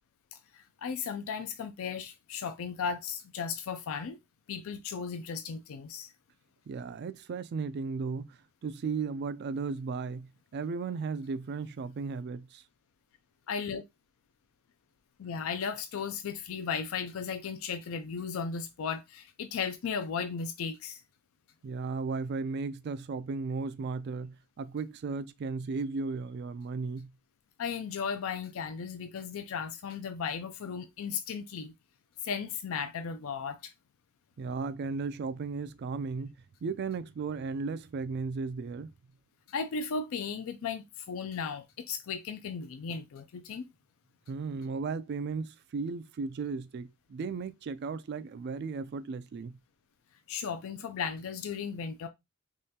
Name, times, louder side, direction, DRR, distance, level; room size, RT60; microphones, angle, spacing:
voice 1, 0.3-4.2 4.5-6.1 13.5-13.8 15.2-21.0 27.6-31.7 32.2-33.7 39.5-43.7 50.3-52.1, left 6 dB, 70° left, 0.4 m, -36 dB
voice 2, 6.7-12.6 21.6-27.1 34.4-36.3 36.6-38.9 44.3-49.6, right 4 dB, 50° right, 0.3 m, -35 dB
3.6 x 3.1 x 2.8 m
head